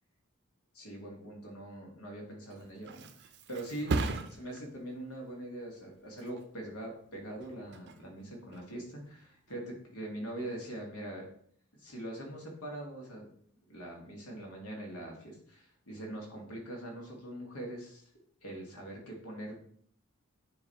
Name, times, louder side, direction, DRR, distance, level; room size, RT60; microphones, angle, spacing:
voice 1, 0.7-11.3 11.7-13.3 13.7-18.1 18.4-19.7, right 1 dB, 80° left, 0 dB, 1.9 m, -43 dB
Thump thud, 2.3-9.8 10.2-10.6, right 3 dB, 50° right, 0.5 m, -40 dB
9.5 x 3.2 x 4.1 m, 0.62 s
head